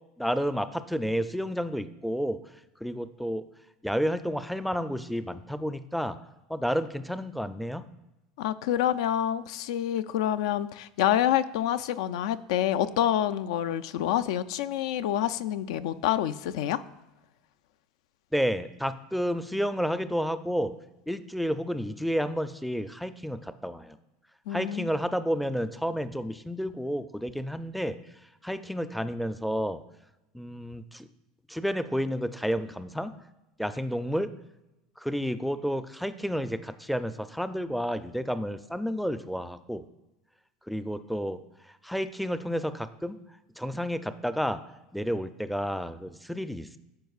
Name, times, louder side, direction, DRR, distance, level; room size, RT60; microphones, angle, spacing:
voice 1, 0.2-2.4 2.8-3.4 3.8-6.2 6.5-7.8 18.3-20.7 21.1-24.0 24.5-28.0 28.4-29.8 30.3-31.0 31.5-33.1 33.6-34.3 35.0-39.8 40.7-41.4 41.8-43.2 43.6-44.6 44.9-46.8, equal, ahead, 12 dB, 0.4 m, -30 dB
voice 2, 8.4-16.8 24.5-24.9, left 11 dB, 75° left, 13 dB, 0.3 m, -27 dB
12.5 x 4.6 x 2.4 m, 0.96 s
supercardioid pair, 100°, 3 cm